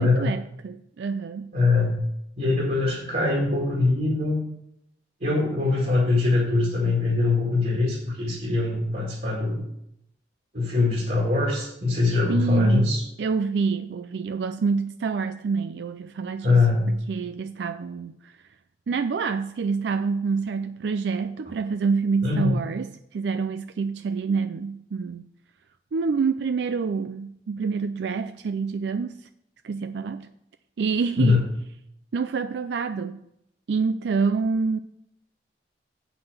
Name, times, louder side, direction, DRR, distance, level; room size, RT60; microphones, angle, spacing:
voice 1, 0.0-1.5 12.3-12.9 13.2-16.6 16.9-18.4 18.9-25.3 25.9-29.3 29.6-30.3 30.8-31.4 32.1-33.2 33.7-34.8, right 5 dB, 75° right, 10 dB, 0.4 m, -27 dB
voice 2, 1.5-2.0 2.4-4.4 5.2-9.6 10.5-13.0 16.4-16.8 22.2-22.6 31.2-31.4, left 3 dB, 50° right, -3 dB, 2.0 m, -22 dB
7.9 x 5.8 x 6.5 m, 0.78 s
head